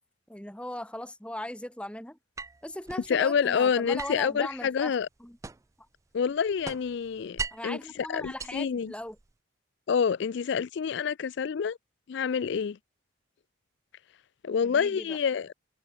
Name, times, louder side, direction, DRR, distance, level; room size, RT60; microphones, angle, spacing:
voice 1, 0.3-2.2 2.6-4.9 5.2-5.4 7.5-9.2 14.6-15.2, left 1 dB, 5° left, 1.3 m, -38 dB
sound 1, 2.4-3.1 4.0-5.8 6.2-7.8 8.2-9.3, right 4 dB, 15° right, 0.3 m, -40 dB
voice 2, 3.1-5.1 6.1-7.8 8.1-8.9 9.9-11.8 12.1-12.8 14.4-15.5, left 6 dB, 60° left, 0.4 m, -27 dB
head